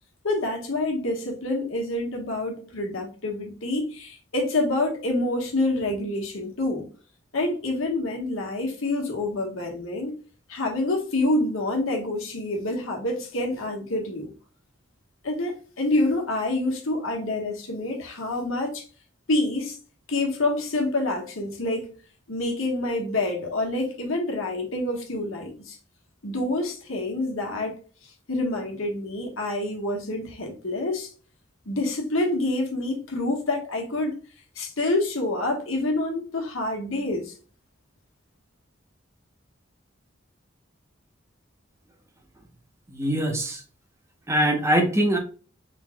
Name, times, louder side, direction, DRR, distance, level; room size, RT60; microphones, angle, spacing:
voice 1, 0.2-6.9 7.3-10.1 10.5-14.3 15.2-18.9 19.3-19.8 20.1-21.9 22.3-25.8 26.2-27.7 28.0-31.1 31.6-34.2 34.5-37.3, left 2 dB, 85° left, 1.4 m, -27 dB
voice 2, 42.9-43.6 44.3-45.2, right 1 dB, 15° right, 0.8 m, -22 dB
4.6 x 4.0 x 2.2 m
head